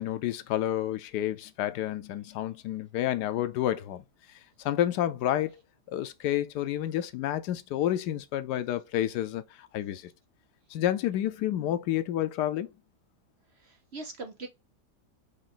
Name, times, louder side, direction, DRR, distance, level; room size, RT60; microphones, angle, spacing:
voice 1, 0.0-4.0 4.6-5.5 5.9-10.1 10.7-12.7, left 12 dB, 90° left, 1.2 m, -29 dB
voice 2, 13.6-14.5, right 3 dB, 50° right, 0.9 m, -41 dB
5.1 x 2.4 x 3.8 m
omnidirectional pair, 1.7 m